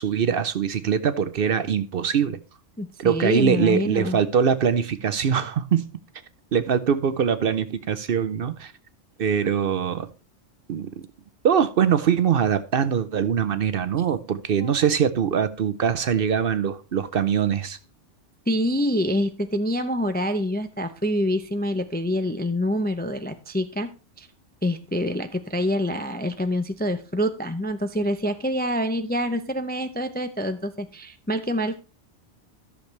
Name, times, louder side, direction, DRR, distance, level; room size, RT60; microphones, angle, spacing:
voice 1, 0.0-2.4 3.0-5.9 6.5-8.7 9.2-10.1 10.7-10.9 11.4-17.8, right 7 dB, 60° right, 0.8 m, -22 dB
voice 2, 2.8-4.2 14.6-14.7 18.5-23.9 24.2-24.3 24.6-31.8, equal, 15° left, 0.4 m, -26 dB
13.5 x 6.6 x 3.2 m
omnidirectional pair, 1.2 m